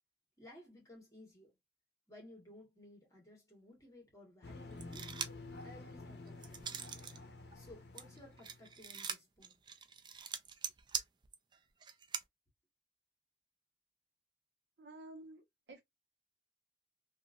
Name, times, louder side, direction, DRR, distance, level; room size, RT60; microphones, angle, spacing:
voice 1, 0.4-1.5 2.1-5.1 5.6-6.7 7.5-9.9, left 1 dB, 20° left, 1.5 m, -57 dB
sound 1, 4.4-8.9, left 2 dB, 70° left, 0.6 m, -50 dB
sound 2, 4.8-5.5 5.9-7.2 7.5-12.2, right 7 dB, 25° right, 0.3 m, -43 dB
voice 2, 14.8-15.8, right 2 dB, 75° right, 0.9 m, -52 dB
2.8 x 2.5 x 2.5 m
head